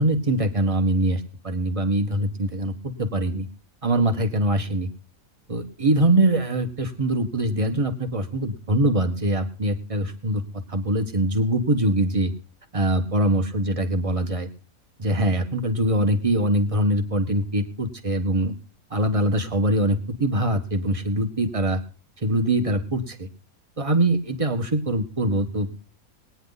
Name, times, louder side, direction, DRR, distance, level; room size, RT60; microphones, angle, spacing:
voice 1, 0.0-2.7 3.0-3.5 3.8-4.9 5.5-10.4 10.7-12.3 12.7-14.5 15.0-18.5 18.9-21.8 22.2-23.3 23.8-25.7, right 1 dB, 25° right, 7 dB, 1.7 m, -23 dB
20.0 x 10.0 x 4.1 m, 0.37 s
omnidirectional pair, 1.5 m